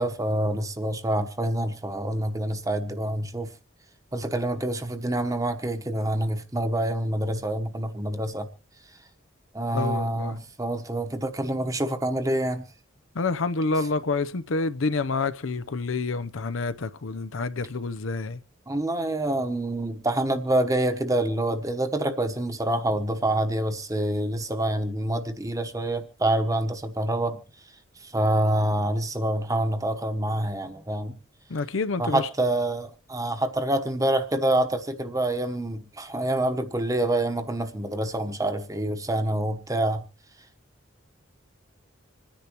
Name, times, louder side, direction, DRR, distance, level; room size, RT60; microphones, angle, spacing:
voice 1, 0.0-3.5 4.1-8.5 9.5-12.6 18.7-27.4 28.0-31.2 32.0-40.0, right 1 dB, 15° right, 1.0 m, -26 dB
voice 2, 9.7-10.4 13.2-18.4 31.5-32.3, left 3 dB, 80° left, 0.7 m, -28 dB
26.5 x 10.0 x 3.0 m
head